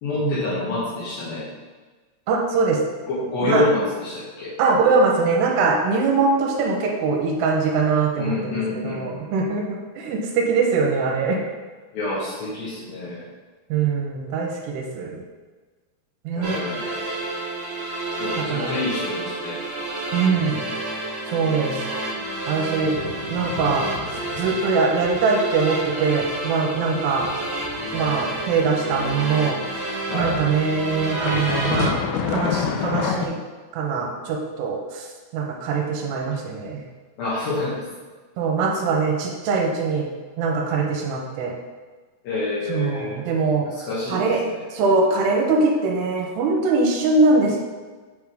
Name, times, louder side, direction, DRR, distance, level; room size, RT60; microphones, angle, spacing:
voice 1, 0.0-1.5 3.1-4.5 8.2-9.4 11.9-13.2 16.3-17.2 18.2-19.6 30.1-30.3 37.2-37.8 42.2-43.3 43.8-44.2 44.5-44.6, left 2 dB, 65° left, -8 dB, 2.7 m, -27 dB
voice 2, 2.3-2.8 3.4-3.7 4.6-11.4 13.7-15.2 16.3-16.6 18.4-18.8 20.1-20.6 21.3-21.8 22.5-22.9 23.3-23.9 24.4-27.3 27.9-29.6 30.1-32.0 32.3-33.4 33.7-35.1 35.3-36.8 38.4-40.1 40.4-41.5 42.7-43.7 44.1-44.4 44.7-47.6, right 4 dB, 80° right, 0 dB, 2.8 m, -22 dB
sound 1, 16.4-31.9, right 2 dB, 55° right, 2.2 m, -30 dB
sound 2, 22.8-24.7 25.0-25.3 25.6-29.2 30.2-33.3, left 7 dB, 85° left, 2.9 m, -29 dB
7.7 x 3.6 x 4.8 m, 1.3 s
omnidirectional pair, 5.0 m